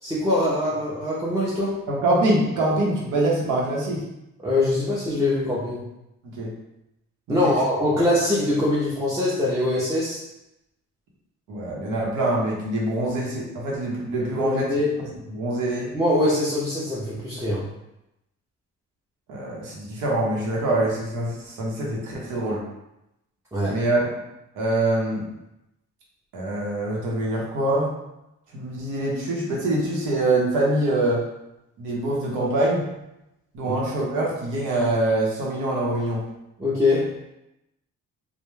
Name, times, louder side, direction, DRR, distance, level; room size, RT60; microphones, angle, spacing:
voice 1, 0.0-1.8 4.4-5.9 7.3-10.2 14.2-15.0 15.9-17.7 23.5-23.8 33.7-33.8 36.6-37.1, left 1 dB, 10° right, -7 dB, 0.5 m, -23 dB
voice 2, 1.9-4.0 6.2-6.5 7.3-7.5 11.5-14.6 15.0-15.9 19.3-22.6 23.7-24.0 24.5-25.3 26.3-27.9 28.5-31.2 31.8-32.9 33.5-36.2, right 1 dB, 90° right, -3 dB, 0.8 m, -24 dB
2.2 x 2.1 x 3.1 m, 0.88 s
cardioid pair, 90°, 30 cm